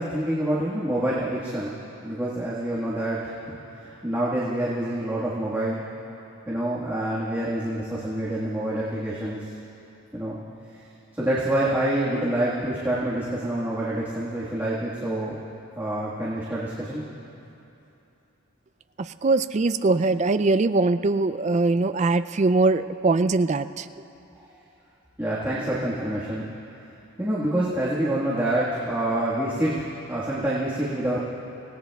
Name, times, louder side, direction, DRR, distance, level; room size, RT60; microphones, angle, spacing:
voice 1, 0.0-1.8 2.0-3.5 3.8-5.9 6.5-9.5 10.1-10.4 11.1-15.4 15.7-17.1 25.2-26.5 27.2-31.2, right 1 dB, 10° right, -9 dB, 1.5 m, -27 dB
voice 2, 19.0-23.9, right 3 dB, 35° right, 12 dB, 0.3 m, -22 dB
26.5 x 17.5 x 2.3 m, 2.9 s
head